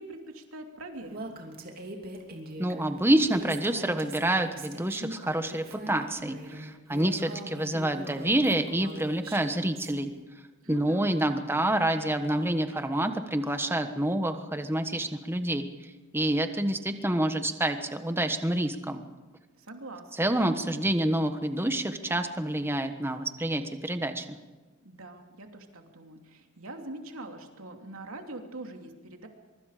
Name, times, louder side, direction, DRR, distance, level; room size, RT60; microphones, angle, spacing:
voice 1, 0.0-1.4 10.6-11.1 12.7-12.9 19.6-20.3 24.8-29.3, right 2 dB, 75° right, 3 dB, 2.9 m, -43 dB
Female speech woman speaking, 1.1-9.9, right 1 dB, 45° right, 2.9 m, -42 dB
voice 2, 2.6-10.1 10.7-15.7 16.1-19.0 20.2-24.4, right 1 dB, 10° right, 8 dB, 1.3 m, -27 dB
24.0 x 23.5 x 5.1 m, 1.3 s
head